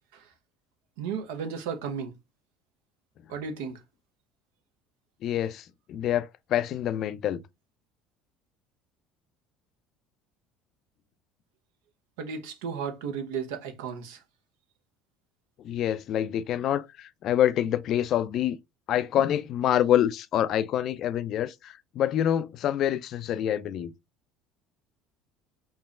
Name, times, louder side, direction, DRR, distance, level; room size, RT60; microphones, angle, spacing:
voice 1, 1.0-2.1 3.3-3.8 12.2-14.2, right 6 dB, 70° right, 0.8 m, -34 dB
voice 2, 5.2-7.4 15.6-18.6 18.9-23.9, left 11 dB, 50° left, 0.4 m, -26 dB
4.7 x 2.8 x 2.4 m
figure-of-eight pair, 65°, 0 cm